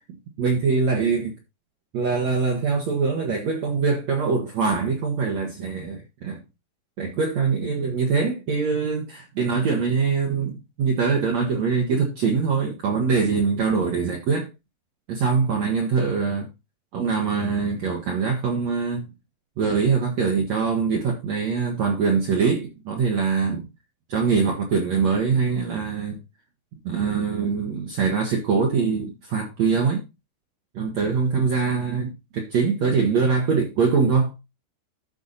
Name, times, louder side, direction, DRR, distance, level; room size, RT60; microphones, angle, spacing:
voice 1, 0.4-1.4 1.9-6.4 7.0-14.5 15.1-16.5 16.9-19.1 19.6-23.7 24.1-26.2 26.8-30.1 30.7-34.3, right 5 dB, 60° right, 2.0 m, -23 dB
13.5 x 4.6 x 4.1 m
omnidirectional pair, 4.8 m